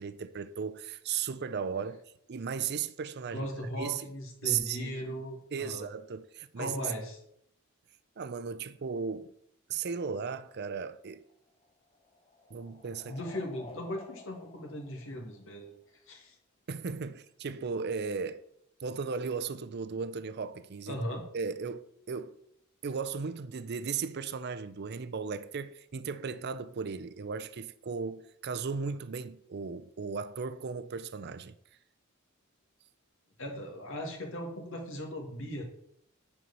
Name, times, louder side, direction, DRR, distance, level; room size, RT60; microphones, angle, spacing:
voice 1, 0.0-2.0 2.3-3.5 3.8-4.1 4.4-5.1 5.5-6.8 8.2-9.3 9.7-11.2 12.5-13.2 16.7-18.4 18.8-21.0 21.3-21.8 22.1-22.3 22.8-31.6, right 6 dB, 50° right, 0.5 m, -36 dB
voice 2, 3.3-5.9 6.6-7.2 13.0-15.7 16.1-16.4 20.9-21.3 33.4-35.6, equal, 65° left, 2.0 m, -38 dB
sound 1, 11.1-15.9, left 2 dB, 30° left, 0.9 m, -53 dB
9.4 x 4.4 x 5.4 m
head